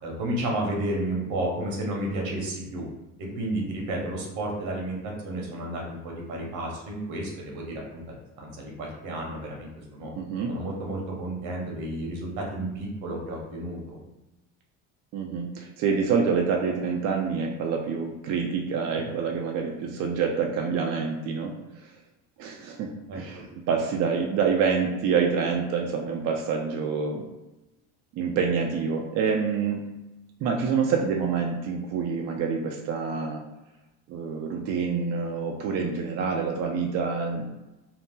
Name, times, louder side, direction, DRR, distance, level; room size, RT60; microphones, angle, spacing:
voice 1, 0.0-2.9 3.2-10.1 10.5-13.8 23.1-23.4, right 1 dB, 70° right, -1 dB, 1.1 m, -32 dB
voice 2, 10.2-10.5 15.1-21.9 22.4-27.2 28.1-29.8 30.4-33.4 34.1-37.4, right 5 dB, 45° right, 1 dB, 0.4 m, -27 dB
2.8 x 2.0 x 3.5 m, 1.0 s
cardioid pair, 120°, 36 cm